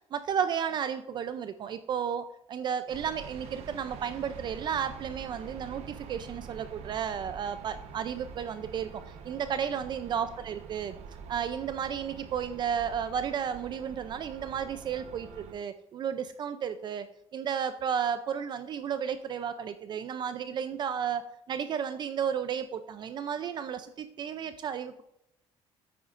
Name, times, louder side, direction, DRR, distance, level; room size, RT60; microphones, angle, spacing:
voice 1, 0.1-10.9 11.3-17.1 17.3-25.0, right 8 dB, 45° right, 11 dB, 0.4 m, -33 dB
sound 1, 2.9-15.5, right 6 dB, 80° right, 0.9 m, -46 dB
9.3 x 8.7 x 2.5 m, 0.82 s
cardioid pair, 135°, 11 cm